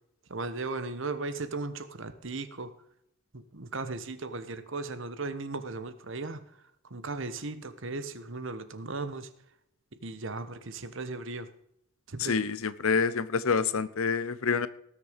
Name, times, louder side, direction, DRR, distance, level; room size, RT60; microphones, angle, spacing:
voice 1, 0.3-2.7 3.3-6.4 6.9-9.3 10.0-11.5 12.1-12.4, right 3 dB, 60° right, 11 dB, 1.1 m, -36 dB
voice 2, 12.2-14.7, left 5 dB, 75° left, 16 dB, 0.8 m, -27 dB
18.5 x 6.8 x 5.1 m, 0.76 s
head